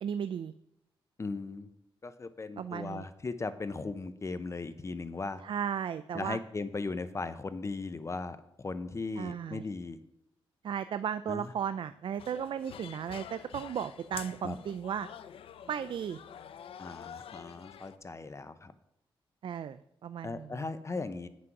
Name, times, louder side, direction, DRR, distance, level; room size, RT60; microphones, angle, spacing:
voice 1, 0.0-0.5 2.6-3.1 5.4-6.4 9.2-9.6 10.6-15.1 15.7-16.2 19.4-20.7, right 8 dB, 65° right, 12 dB, 0.4 m, -35 dB
voice 2, 1.2-1.7 2.0-5.4 6.1-10.0 11.3-11.5 14.4-14.6 16.8-18.7 20.2-21.3, left 3 dB, 30° left, 12 dB, 0.6 m, -37 dB
sound 1, 12.2-18.0, left 9 dB, 80° left, 0.5 m, -47 dB
9.3 x 6.1 x 5.9 m, 0.82 s
cardioid pair, 90°, 9 cm